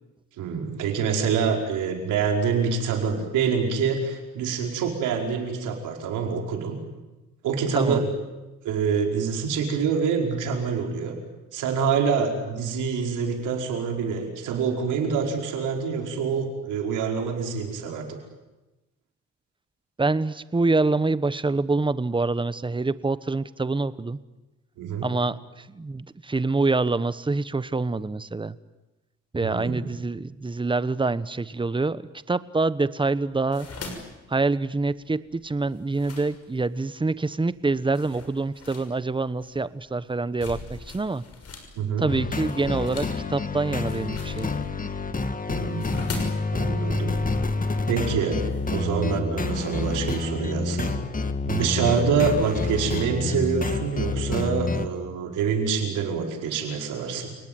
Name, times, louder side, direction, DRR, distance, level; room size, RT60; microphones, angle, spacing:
voice 1, 0.4-6.8 7.4-8.1 8.7-11.2 11.5-18.2 24.8-25.1 29.4-29.9 41.8-42.1 45.5-46.1 46.5-47.2 47.9-48.4 48.7-51.0 51.5-57.4, right 6 dB, 90° right, 3 dB, 5.0 m, -26 dB
voice 2, 7.7-8.0 20.0-24.2 25.0-28.6 29.3-33.7 34.3-41.2 42.0-44.5, right 3 dB, 15° right, 15 dB, 1.1 m, -26 dB
sound 1, 33.3-36.9 37.4-37.6 37.9-41.7 42.0-48.8, left 3 dB, 55° left, 6.3 m, -40 dB
sound 2, 42.1-54.9, left 3 dB, 25° left, 2.1 m, -28 dB
30.0 x 19.0 x 9.4 m, 1.1 s
cardioid pair, 90°, 30 cm